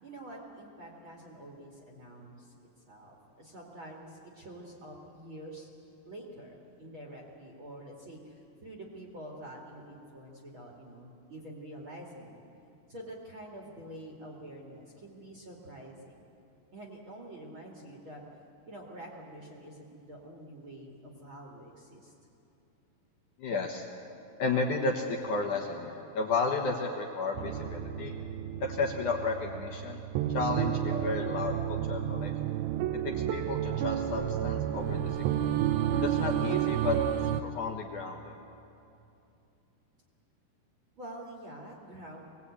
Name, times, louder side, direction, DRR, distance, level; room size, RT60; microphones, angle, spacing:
voice 1, 0.0-2.5 2.9-5.7 6.0-12.4 12.9-16.2 16.7-18.2 18.7-22.1 41.0-42.2, right 1 dB, 40° right, -1 dB, 2.0 m, -47 dB
voice 2, 23.4-23.8 24.4-28.1 28.6-30.0 30.3-32.3 33.0-35.5 36.0-37.0 37.2-38.3, left 4 dB, 60° left, 1 dB, 2.3 m, -33 dB
sound 1, 27.4-37.4, right 10 dB, 75° right, 2.5 m, -31 dB
22.0 x 19.5 x 8.5 m, 2.8 s
omnidirectional pair, 4.7 m